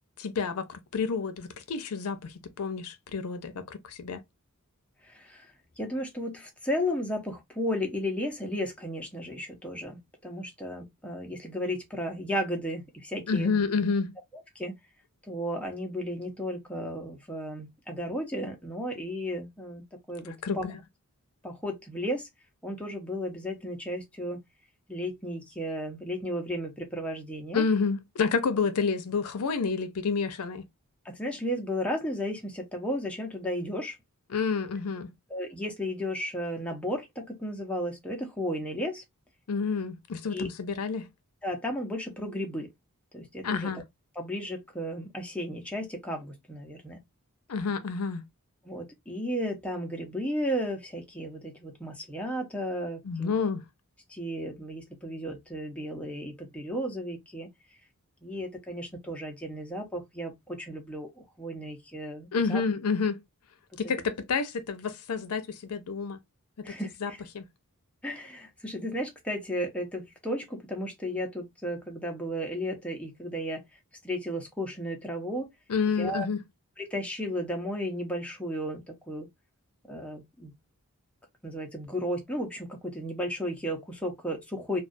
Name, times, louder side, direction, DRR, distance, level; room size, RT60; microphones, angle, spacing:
voice 1, 0.2-4.2 13.3-14.1 20.2-20.8 27.5-30.7 34.3-35.1 39.5-41.1 43.4-43.8 47.5-48.2 53.0-53.7 62.3-63.2 63.8-66.2 66.6-66.8 67.0-67.5 75.7-76.4, left 5 dB, 75° left, 0.5 m, -29 dB
voice 2, 5.0-5.5 5.8-13.6 14.6-14.8 15.3-20.7 21.4-22.3 22.6-24.4 24.9-27.7 31.0-34.0 35.3-39.0 40.3-40.5 41.4-42.7 43.1-43.8 44.2-47.0 48.7-53.3 54.1-57.5 58.2-62.6 63.8-63.9 66.6-67.2 68.0-73.6 74.0-75.5 76.0-76.3 76.8-79.3 79.9-80.5 81.4-84.8, equal, 5° left, 0.6 m, -34 dB
2.3 x 2.3 x 2.5 m
head